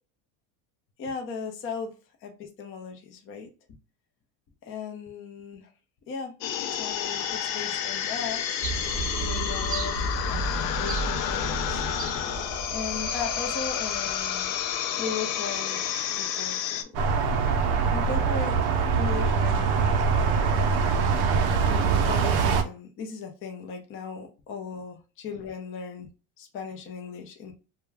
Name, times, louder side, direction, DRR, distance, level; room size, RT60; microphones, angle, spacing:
voice 1, 1.0-1.9 2.2-3.5 4.6-5.7 6.1-6.3 6.8-8.5 9.2-11.8 12.7-14.6 14.8-15.8 16.1-16.9 17.9-20.8 21.7-26.1 26.4-27.5, left 5 dB, 25° left, 4 dB, 0.5 m, -37 dB
sound 1, 6.4-16.8, left 9 dB, 85° left, 0.6 m, -30 dB
sound 2, 8.6-14.5 14.8-14.9, right 3 dB, 15° right, 0.8 m, -34 dB
sound 3, 16.9-22.6, right 5 dB, 55° right, 0.6 m, -23 dB
2.3 x 2.1 x 3.3 m, 0.32 s
supercardioid pair, 120°, 49 cm